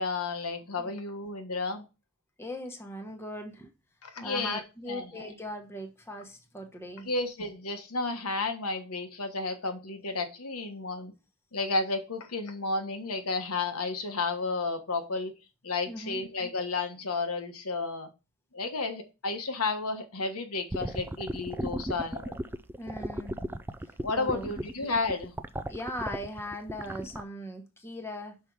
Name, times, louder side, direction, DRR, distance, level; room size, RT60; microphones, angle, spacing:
voice 1, 0.0-1.9 4.0-4.6 4.9-5.3 7.0-11.1 11.5-15.3 15.6-18.1 18.5-22.4 24.0-25.3, left 3 dB, 75° left, 1.3 m, -32 dB
voice 2, 2.4-3.7 4.2-7.1 15.9-16.2 22.8-23.4 24.1-24.5 25.7-28.4, left 1 dB, 10° left, 1.0 m, -39 dB
sound 1, 20.7-27.2, right 1 dB, 10° right, 0.4 m, -35 dB
5.9 x 5.3 x 4.7 m
head